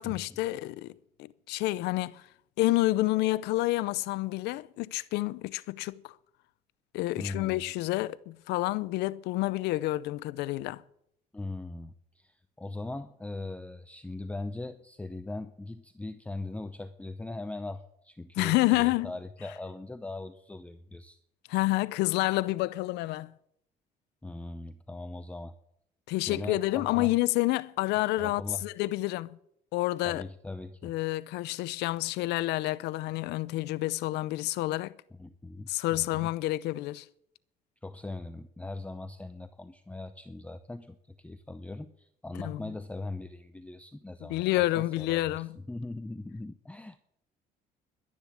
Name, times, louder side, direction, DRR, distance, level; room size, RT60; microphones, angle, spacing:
voice 1, 0.0-2.2 2.6-6.2 6.9-10.8 18.4-19.1 21.5-23.3 26.1-29.4 29.7-30.2 30.8-35.0 35.7-37.1 42.4-42.7 44.2-45.6, left 18 dB, 90° left, 0.6 m, -29 dB
voice 2, 7.2-7.6 11.3-21.2 24.2-25.5 26.2-27.1 28.2-28.6 30.0-30.9 35.2-36.3 37.8-45.2 45.6-47.0, left 2 dB, 10° left, 0.7 m, -40 dB
12.0 x 10.5 x 7.3 m
cardioid pair, 110°, 17 cm